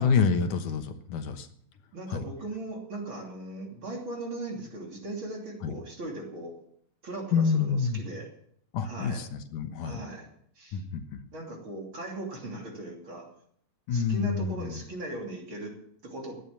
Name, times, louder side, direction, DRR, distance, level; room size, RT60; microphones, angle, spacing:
voice 1, 0.0-1.5 2.1-2.2 5.6-5.7 7.3-8.0 8.7-10.0 10.7-11.2 13.9-14.8, left 5 dB, 70° left, 7 dB, 2.6 m, -27 dB
voice 2, 1.9-6.6 7.0-8.3 8.8-9.2 9.8-10.3 10.6-10.8 11.3-13.3 13.9-16.5, right 2 dB, 35° right, 1 dB, 3.5 m, -38 dB
16.5 x 11.0 x 7.0 m, 0.68 s
omnidirectional pair, 3.9 m